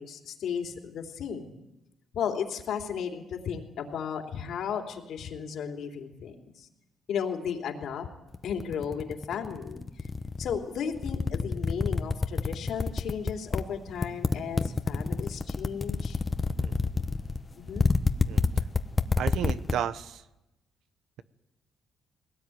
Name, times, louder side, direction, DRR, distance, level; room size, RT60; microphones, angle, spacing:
voice 1, 0.0-1.6 2.1-6.7 7.1-8.1 8.4-10.1 10.4-16.2 17.5-17.9, left 7 dB, 70° left, 3 dB, 3.3 m, -34 dB
sound 1, 8.3-10.6 10.9-13.6 14.0-19.7, left 4 dB, 30° left, 1.2 m, -27 dB
voice 2, 19.2-20.2, right 9 dB, 80° right, 14 dB, 1.0 m, -33 dB
21.0 x 18.0 x 9.4 m, 0.96 s
cardioid pair, 90°, 0 cm